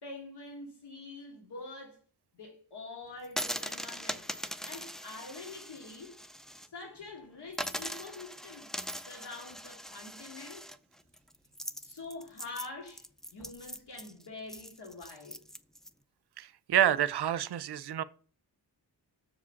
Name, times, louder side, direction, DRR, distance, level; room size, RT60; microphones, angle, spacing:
voice 1, 0.0-2.0 2.3-4.3 4.6-6.2 6.5-8.7 9.0-10.7 11.8-13.0 13.3-15.4, left 3 dB, 85° left, 2.4 m, -45 dB
sound 1, 3.2-6.7 7.0-7.1 7.5-15.9, equal, ahead, 0.4 m, -41 dB
voice 2, 16.4-18.0, right 10 dB, 80° right, 0.6 m, -28 dB
7.0 x 5.0 x 7.0 m
wide cardioid pair, 120°, 40 cm